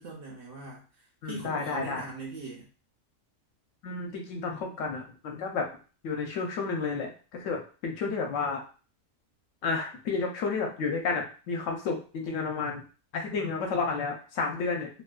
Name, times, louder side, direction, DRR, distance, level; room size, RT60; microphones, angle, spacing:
voice 1, 0.0-2.7, right 3 dB, 55° right, -2 dB, 0.7 m, -41 dB
voice 2, 1.2-2.0 3.8-5.7 6.0-8.6 9.6-12.8 13.1-15.0, left 4 dB, 75° left, 2 dB, 0.9 m, -31 dB
2.7 x 2.2 x 2.3 m, 0.37 s
omnidirectional pair, 1.4 m